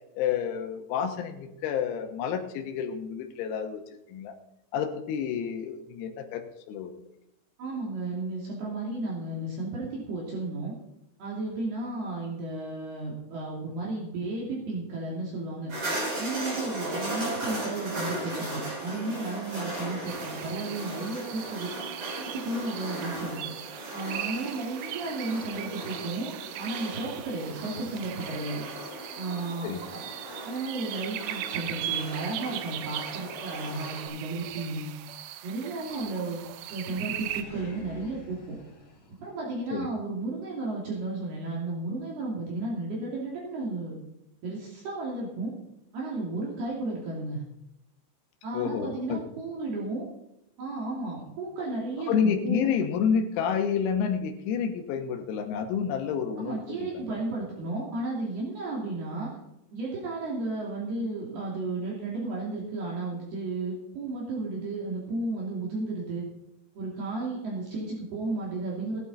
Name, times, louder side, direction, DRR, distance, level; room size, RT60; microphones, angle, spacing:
voice 1, 0.2-3.8 4.1-4.4 4.7-6.9 29.6-29.8 39.7-39.9 48.5-49.2 52.1-57.1, left 7 dB, 90° left, 5 dB, 3.9 m, -29 dB
voice 2, 7.6-10.7 11.2-15.7 16.2-21.7 22.2-23.4 23.9-28.6 29.2-30.0 30.5-34.9 35.4-36.4 36.7-38.4 39.2-44.0 44.4-45.5 45.9-47.4 48.4-50.1 50.6-52.7 56.4-59.3 59.7-66.3 66.8-69.0, right 2 dB, 55° right, -4 dB, 4.2 m, -33 dB
sound 1, 15.7-34.1, right 1 dB, 30° right, 6.1 m, -37 dB
sound 2, 20.1-37.4, right 12 dB, 85° right, 3.4 m, -39 dB
Animal, 34.4-35.2 35.8-36.5 36.8-39.8, left 2 dB, 40° left, 2.9 m, -50 dB
16.5 x 11.5 x 4.1 m, 0.86 s
omnidirectional pair, 6.0 m